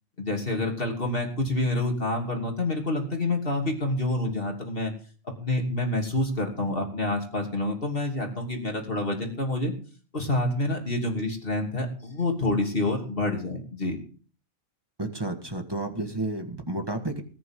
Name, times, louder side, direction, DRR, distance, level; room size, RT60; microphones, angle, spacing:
voice 1, 0.2-4.9 5.4-9.7 10.1-14.0, left 2 dB, 45° left, 1 dB, 3.1 m, -27 dB
voice 2, 15.0-17.2, right 2 dB, 20° right, 5 dB, 1.6 m, -31 dB
20.0 x 10.0 x 3.8 m, 0.41 s
omnidirectional pair, 1.4 m